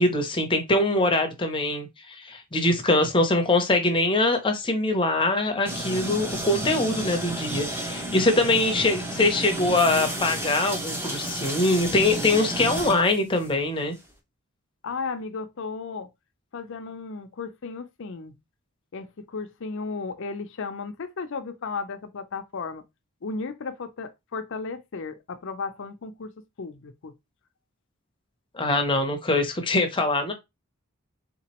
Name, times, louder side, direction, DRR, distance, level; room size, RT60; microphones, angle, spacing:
voice 1, 0.0-14.0 28.5-30.3, left 2 dB, 25° left, 0.7 m, -23 dB
sound 1, 5.7-13.5, right 1 dB, 10° right, 0.7 m, -32 dB
voice 2, 14.8-16.1 16.5-18.4 18.9-22.8 23.2-26.3 26.6-27.1, left 4 dB, 60° left, 0.5 m, -34 dB
3.7 x 2.9 x 2.9 m
head